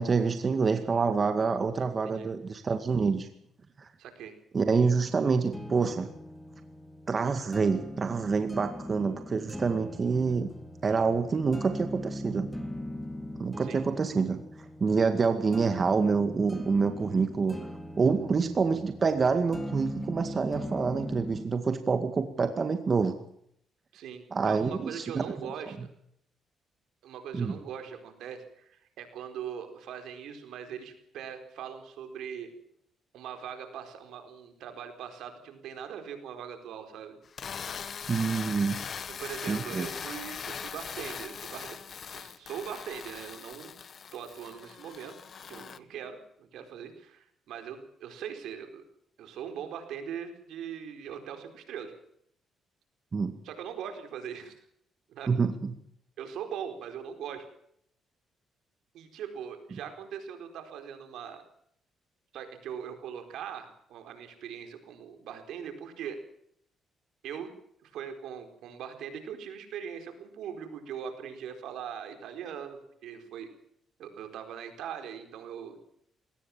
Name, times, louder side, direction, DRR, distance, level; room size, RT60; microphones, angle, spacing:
voice 1, 0.0-3.3 3.8-3.9 4.5-6.1 7.1-10.5 10.8-12.5 13.4-17.6 18.0-23.1 24.3-25.3 27.3-27.6 38.1-38.8 39.5-39.9 53.1-53.3 55.3-55.7, right 5 dB, 40° right, 8 dB, 2.0 m, -27 dB
voice 2, 4.0-4.3 10.8-11.0 13.6-13.8 23.9-25.8 27.0-32.5 33.1-37.2 39.1-41.8 42.1-43.8 44.1-45.1 45.5-48.8 49.2-51.9 53.4-54.5 55.1-55.3 56.2-57.5 58.9-61.4 62.3-66.2 67.2-67.5 67.8-73.5 74.0-75.8, right 8 dB, 80° right, 6 dB, 4.5 m, -41 dB
sound 1, 5.5-21.5, equal, 5° left, 3.4 m, -41 dB
sound 2, 37.3-45.8, left 7 dB, 50° left, 1.2 m, -40 dB
21.0 x 18.5 x 7.4 m, 0.70 s
cardioid pair, 90°, 0 cm